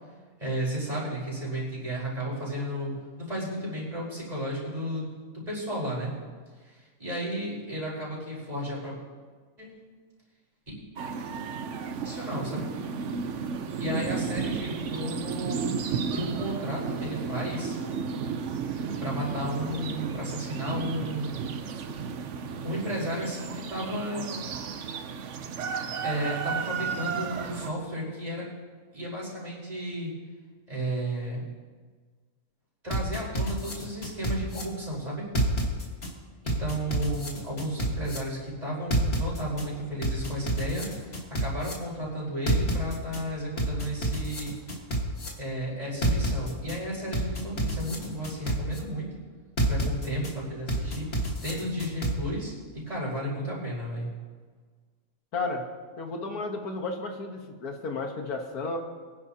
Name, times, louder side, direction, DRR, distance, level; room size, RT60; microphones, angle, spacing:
voice 1, 0.4-2.9 3.2-5.1 5.3-6.1 6.6-8.9 9.6-9.7 12.0-12.7 13.8-15.7 16.1-17.8 19.0-21.4 22.6-24.4 26.0-28.5 28.9-30.1 30.7-31.4 32.8-35.3 36.4-44.5 45.4-49.1 49.7-51.1 51.4-52.5 52.9-54.1, equal, 25° right, -7 dB, 4.8 m, -33 dB
sound 1, 11.0-27.7, right 6 dB, 60° right, 1.0 m, -33 dB
sound 2, 32.9-34.6 35.4-36.1 36.5-38.2 38.9-39.6 40.0-41.7 42.5-43.2 43.6-45.3 46.0-46.8 47.1-48.8 49.6-50.3 50.7-52.1, right 1 dB, 45° left, 1.9 m, -28 dB
voice 2, 55.3-55.7 56.0-58.8, left 3 dB, 85° left, 3 dB, 1.8 m, -33 dB
23.5 x 10.5 x 2.9 m, 1.5 s
omnidirectional pair, 1.6 m